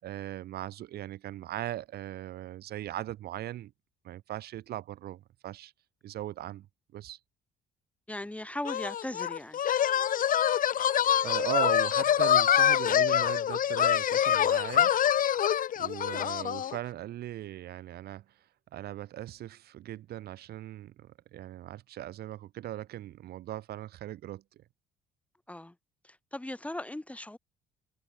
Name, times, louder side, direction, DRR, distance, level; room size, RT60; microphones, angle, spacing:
voice 1, 0.0-3.7 4.0-5.7 6.0-6.7 6.9-7.2 11.2-15.0 15.8-18.2 18.7-24.6, right 13 dB, 70° right, 5.7 m, -39 dB
voice 2, 8.1-9.6 25.5-25.8 26.0-27.4, left 1 dB, 10° left, 7.1 m, -38 dB
sound 1, 8.7-16.8, left 10 dB, 55° left, 4.2 m, -25 dB
cardioid pair, 110°, 17 cm